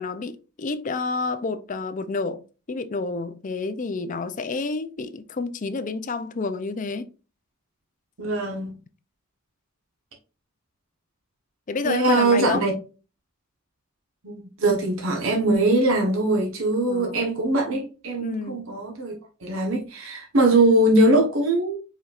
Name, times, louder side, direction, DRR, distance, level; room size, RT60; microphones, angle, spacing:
voice 1, 0.0-2.4 2.7-7.1 11.7-12.7 16.9-17.2 18.2-18.7, left 4 dB, 35° left, 0.4 m, -29 dB
voice 2, 8.2-8.7 11.8-12.7 14.2-19.1 19.4-21.8, right 2 dB, 65° right, 1.1 m, -21 dB
4.9 x 4.2 x 2.4 m
head